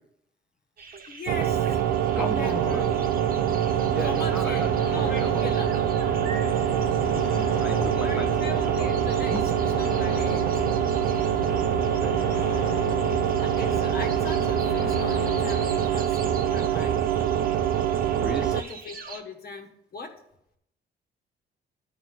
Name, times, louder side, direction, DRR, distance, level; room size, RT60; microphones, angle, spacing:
sound 1, 0.8-19.2, right 4 dB, 45° right, 1.2 m, -44 dB
voice 1, 1.1-1.8 2.2-3.0 4.0-5.7 7.9-9.4 9.8-10.5 13.4-16.9 18.4-20.2, left 3 dB, 50° left, 4 dB, 1.3 m, -39 dB
sound 2, 1.3-18.6, right 10 dB, 75° right, 0.5 m, -25 dB
voice 2, 2.2-2.8 3.9-4.7 5.2-5.5 6.3-8.3 8.8-8.9 9.3-9.4 11.4-12.3 12.6-13.2 18.1-18.6, equal, 5° right, 2 dB, 1.0 m, -36 dB
sound 3, 2.4-15.8, left 11 dB, 85° left, 0.5 m, -37 dB
9.6 x 4.5 x 6.0 m, 0.77 s
cardioid pair, 90°, 20 cm